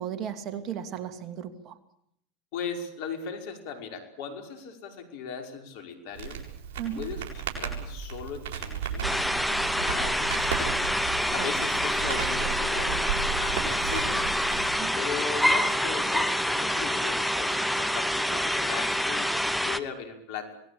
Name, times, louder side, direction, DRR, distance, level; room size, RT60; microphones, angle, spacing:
voice 1, 0.0-1.8 6.8-7.0 11.4-11.5 14.8-15.0, right 9 dB, 45° right, 9 dB, 2.7 m, -35 dB
voice 2, 2.5-6.4 6.9-10.9 11.3-14.2 15.0-19.3 19.6-20.5, left 6 dB, 60° left, 5 dB, 5.4 m, -38 dB
Crackle, 6.1-14.8, right 7 dB, 65° right, 7.7 m, -35 dB
sound 1, 9.0-19.8, equal, ahead, 1.4 m, -27 dB
26.0 x 19.5 x 8.7 m, 0.73 s
hypercardioid pair, 90°, 0 cm